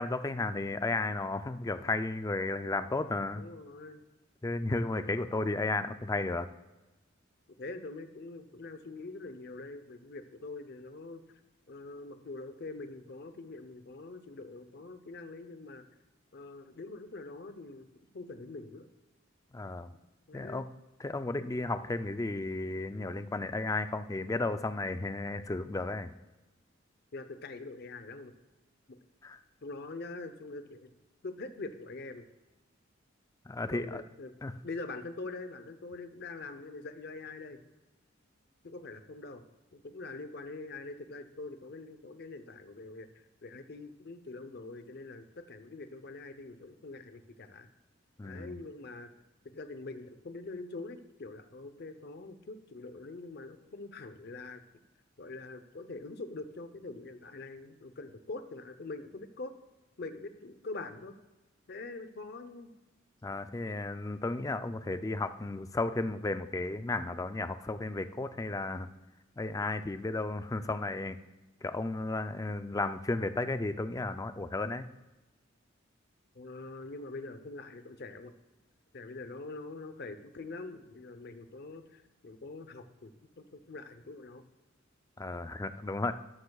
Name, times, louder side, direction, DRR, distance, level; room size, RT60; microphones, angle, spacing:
voice 1, 0.0-3.4 4.4-6.5 19.5-19.9 20.3-20.7 21.0-26.1 29.2-29.4 33.5-34.0 34.4-34.5 48.2-48.6 63.2-68.9 69.4-71.2 71.6-74.8 85.2-86.1, left 2 dB, 15° left, 10 dB, 0.4 m, -33 dB
voice 2, 3.3-4.0 5.0-5.3 7.6-11.2 11.7-15.9 16.3-17.9 18.1-18.9 19.9-20.0 20.3-20.7 27.1-28.3 28.9-29.0 29.6-30.9 31.2-32.2 33.7-34.3 34.6-37.6 38.6-39.4 39.7-47.7 48.2-49.1 49.4-54.6 55.2-59.5 60.0-61.2 61.7-62.7 76.3-78.3 78.9-84.5, left 3 dB, 55° left, 10 dB, 0.7 m, -44 dB
13.0 x 11.5 x 2.3 m, 1.1 s
head